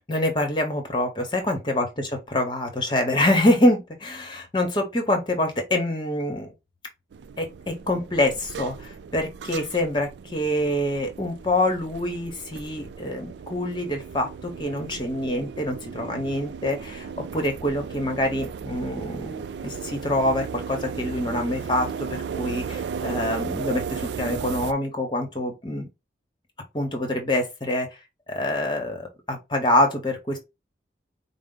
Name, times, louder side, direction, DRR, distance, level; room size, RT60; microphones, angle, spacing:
voice 1, 0.1-6.5 7.4-21.9 22.3-25.9 26.7-27.9 28.3-30.4, left 1 dB, 25° left, 0.9 m, -25 dB
sound 1, 7.1-24.7, right 6 dB, 75° right, 0.3 m, -35 dB
4.7 x 2.0 x 3.8 m
head